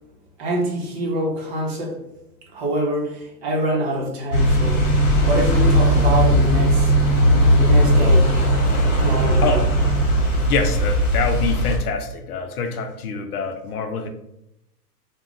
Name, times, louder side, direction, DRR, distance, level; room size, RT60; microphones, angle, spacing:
voice 1, 0.4-2.0 2.5-6.9 7.5-8.4 8.9-9.6, equal, 40° right, -1 dB, 0.8 m, -25 dB
sound 1, 4.3-11.8, equal, 50° left, 1.1 m, -17 dB
voice 2, 10.5-14.1, left 5 dB, 65° left, 6 dB, 0.6 m, -25 dB
2.3 x 2.2 x 3.6 m, 0.81 s
hypercardioid pair, 135°, 49 cm